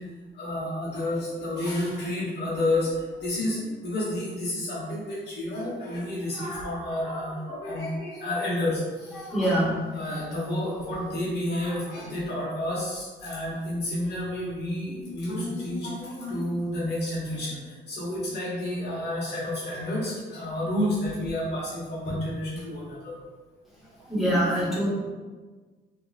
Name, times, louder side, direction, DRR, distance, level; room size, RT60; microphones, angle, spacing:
voice 1, 0.4-2.9 3.2-3.6 3.8-8.8 9.4-9.6 9.9-17.6 17.9-23.1, left 1 dB, 55° left, -8 dB, 1.2 m, -30 dB
voice 2, 9.2-9.8 24.1-24.9, right 1 dB, ahead, -8 dB, 1.2 m, -24 dB
2.9 x 2.5 x 2.4 m, 1.4 s
cardioid pair, 90°, 20 cm